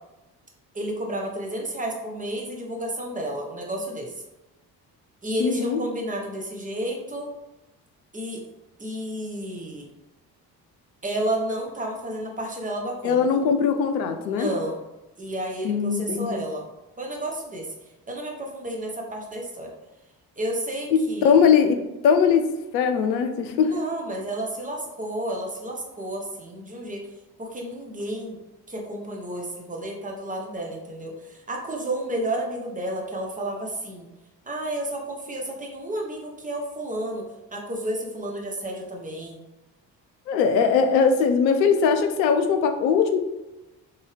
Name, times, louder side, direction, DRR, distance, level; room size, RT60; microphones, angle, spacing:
voice 1, 0.7-4.2 5.2-7.3 8.1-8.4 8.8-9.9 11.0-13.4 14.2-14.8 15.2-16.7 17.0-17.7 18.1-19.7 20.4-21.3 23.6-27.1 27.4-28.4 28.7-34.1 34.5-37.2 37.5-39.4, right 1 dB, 15° right, 0 dB, 1.0 m, -31 dB
voice 2, 5.4-5.8 13.0-14.5 15.6-16.4 20.9-22.4 22.7-23.7 40.3-43.2, left 6 dB, 80° left, 6 dB, 0.6 m, -20 dB
4.0 x 2.7 x 3.2 m, 1.0 s
figure-of-eight pair, 45°, 50 cm